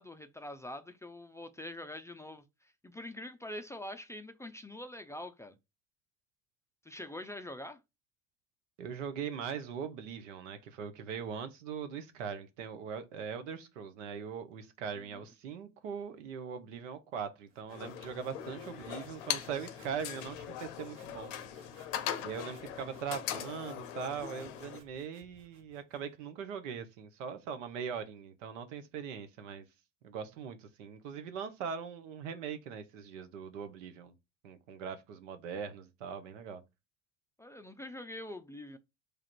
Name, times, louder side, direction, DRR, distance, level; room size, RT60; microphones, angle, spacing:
voice 1, 0.0-5.6 6.8-7.8 15.0-15.2 37.4-38.8, left 1 dB, 10° left, 0.4 m, -44 dB
voice 2, 8.8-21.3 22.2-29.6 30.0-34.1 34.4-36.6, right 7 dB, 85° right, 0.7 m, -41 dB
sound 1, 17.5-26.1, right 2 dB, 55° right, 1.2 m, -61 dB
sound 2, 17.7-24.8, left 10 dB, 80° left, 0.6 m, -40 dB
3.2 x 2.5 x 4.3 m
hypercardioid pair, 80°, 36 cm